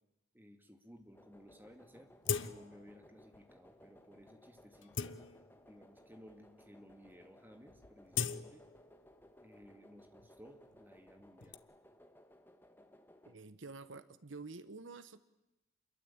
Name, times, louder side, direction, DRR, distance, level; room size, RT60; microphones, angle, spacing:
voice 1, 0.3-2.1 2.4-5.2 5.6-8.6 9.4-11.6, equal, 10° right, 6 dB, 2.4 m, -58 dB
sound 1, 1.1-13.3, left 1 dB, 10° left, 1.8 m, -62 dB
sound 2, 1.2-1.3 1.5-1.6 2.2-2.9 3.3-3.5 4.1-4.2 4.7-5.8 6.5-6.6 6.9-7.2 7.5-9.3 9.6-11.5, left 7 dB, 70° left, 1.1 m, -41 dB
voice 2, 13.2-15.2, right 3 dB, 75° right, 14 dB, 1.1 m, -49 dB
28.0 x 22.5 x 8.8 m, 0.96 s
head